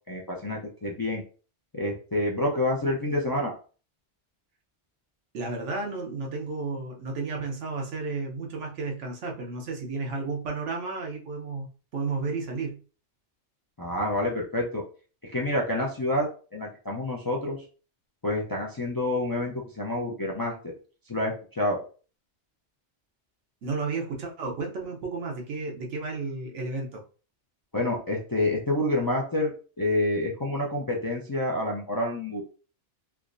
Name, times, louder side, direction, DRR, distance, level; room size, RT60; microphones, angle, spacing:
voice 1, 0.1-1.2 1.7-3.5 13.8-14.8 15.2-16.3 16.5-17.6 18.2-20.7 21.1-21.8 27.7-32.4, left 1 dB, 30° left, -2 dB, 0.4 m, -28 dB
voice 2, 5.3-11.7 11.9-12.8 23.6-27.0, right 4 dB, 85° right, 2 dB, 1.1 m, -32 dB
3.5 x 3.0 x 2.5 m, 0.38 s
omnidirectional pair, 1.2 m